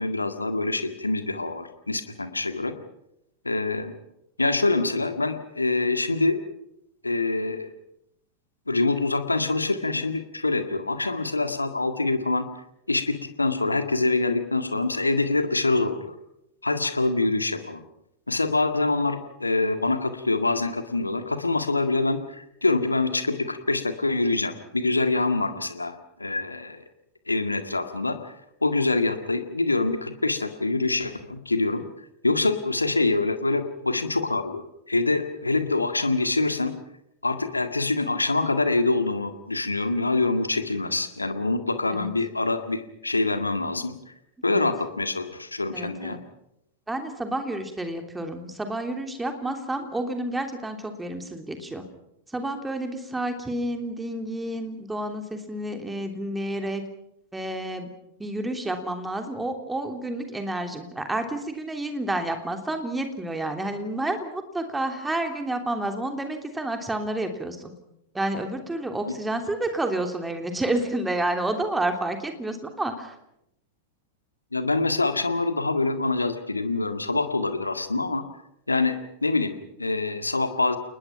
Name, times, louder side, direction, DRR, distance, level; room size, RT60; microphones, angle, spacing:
voice 1, 0.0-2.7 3.5-3.9 4.4-6.4 7.0-7.7 8.7-12.5 12.9-16.2 16.6-17.8 18.3-25.9 26.2-26.8 27.3-28.3 28.6-31.8 32.2-36.7 37.2-44.0 44.4-46.2 74.5-78.2 78.7-80.8, left 3 dB, 80° left, 9 dB, 1.8 m, -25 dB
voice 2, 45.7-46.2 46.9-51.8 52.3-56.8 57.3-57.9 58.2-67.7 68.1-73.1, right 1 dB, 10° right, 5 dB, 3.2 m, -30 dB
29.5 x 20.0 x 5.9 m, 0.82 s
figure-of-eight pair, 90°, 0 cm